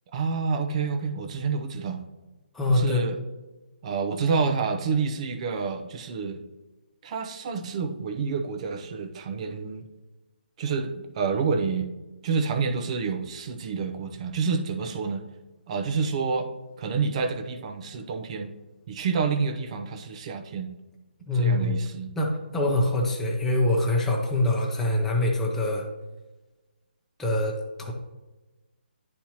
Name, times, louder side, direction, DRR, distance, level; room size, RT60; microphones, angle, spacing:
voice 1, 0.1-2.0 2.7-3.2 3.8-6.4 7.0-9.8 10.6-11.9 12.2-15.2 15.7-16.5 16.8-18.5 18.9-20.7 21.3-22.1, right 5 dB, 35° right, 6 dB, 0.7 m, -28 dB
voice 2, 2.5-3.0 21.3-21.8 22.2-25.9 27.2-27.9, left 1 dB, 5° left, -2 dB, 0.8 m, -24 dB
10.5 x 4.4 x 2.9 m, 1.1 s
figure-of-eight pair, 150°, 6 cm